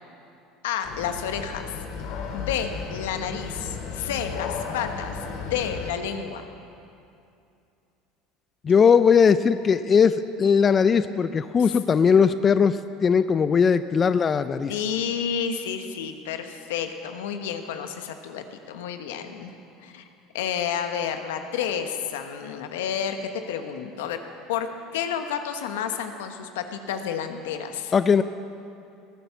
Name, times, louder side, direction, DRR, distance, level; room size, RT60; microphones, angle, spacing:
voice 1, 0.6-1.8 2.3-5.2 5.5-6.5 11.6-11.7 14.7-19.5 19.8-20.1 20.3-24.2 24.5-27.9, left 8 dB, 85° left, 7 dB, 1.2 m, -30 dB
sound 1, 0.8-5.9, left 5 dB, 70° left, 2.0 m, -34 dB
voice 2, 8.6-14.7 27.9-28.2, left 6 dB, 30° left, 13 dB, 0.4 m, -19 dB
18.5 x 9.9 x 7.0 m, 2.6 s
supercardioid pair, 95°, 0 cm